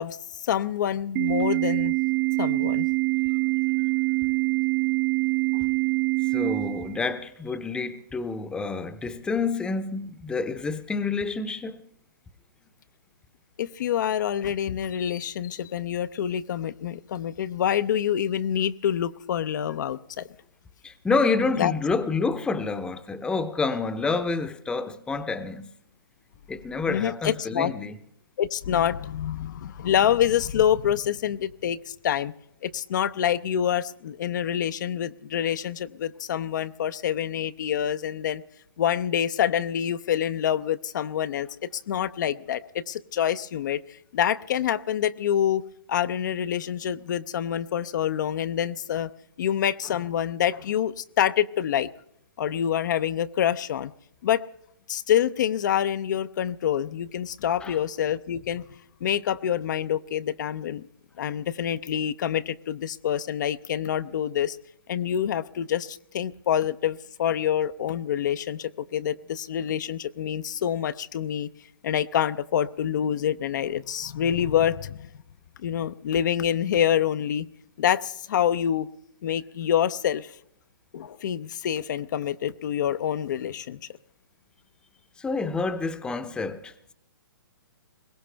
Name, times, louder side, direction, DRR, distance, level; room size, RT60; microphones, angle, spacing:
voice 1, 0.0-1.9 2.4-2.9 13.6-20.3 21.6-21.7 26.8-27.7 28.4-32.3 32.6-38.4 38.8-41.5 41.7-43.8 44.1-45.6 45.9-49.1 49.4-51.9 52.4-53.9 54.2-54.4 54.9-58.6 59.0-60.8 61.2-64.6 64.9-71.5 71.8-75.1 75.6-77.5 77.8-78.9 79.2-80.3 80.9-83.8, left 9 dB, 55° left, 0.6 m, -26 dB
Organ, 1.2-7.2, right 23 dB, 35° right, 0.5 m, -25 dB
voice 2, 6.3-11.8 20.8-25.7 26.5-27.9 57.6-57.8 85.2-86.9, left 4 dB, 5° left, 0.8 m, -28 dB
21.5 x 17.5 x 3.3 m
hypercardioid pair, 140°, 12 cm